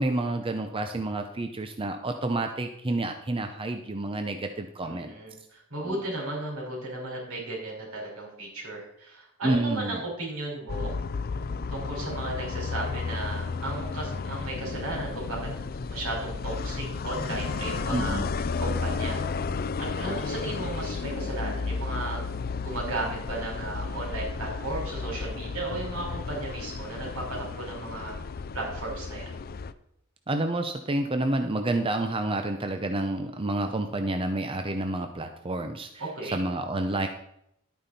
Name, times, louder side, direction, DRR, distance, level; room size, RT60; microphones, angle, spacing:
voice 1, 0.0-5.1 5.8-6.0 9.4-10.0 17.9-18.3 30.3-36.0 36.3-37.1, right 2 dB, 25° right, 6 dB, 0.7 m, -29 dB
voice 2, 4.8-10.9 11.7-15.4 15.9-18.2 18.6-19.2 19.8-22.2 22.6-28.1 28.5-29.3 36.0-36.4, right 2 dB, 75° right, -2 dB, 5.2 m, -35 dB
sound 1, 10.7-29.7, left 4 dB, 45° left, 0.5 m, -33 dB
11.5 x 8.9 x 4.3 m, 0.76 s
head